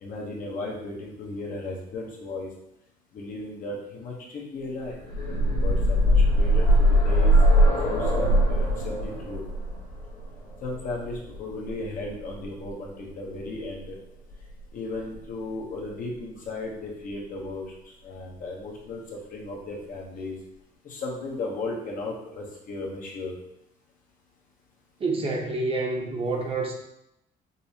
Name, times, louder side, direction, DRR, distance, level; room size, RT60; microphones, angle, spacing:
voice 1, 0.0-2.5 3.1-5.0 5.6-7.3 7.6-9.4 10.6-14.0 14.7-20.4 20.8-23.3, left 2 dB, 55° left, -2 dB, 0.9 m, -35 dB
sound 1, 4.9-12.7 13.8-13.9 14.3-14.4, equal, 80° left, 1.2 m, -21 dB
voice 2, 25.0-26.7, right 3 dB, 35° right, 0 dB, 0.8 m, -28 dB
5.3 x 2.0 x 2.8 m, 0.83 s
cardioid pair, 110°, 17 cm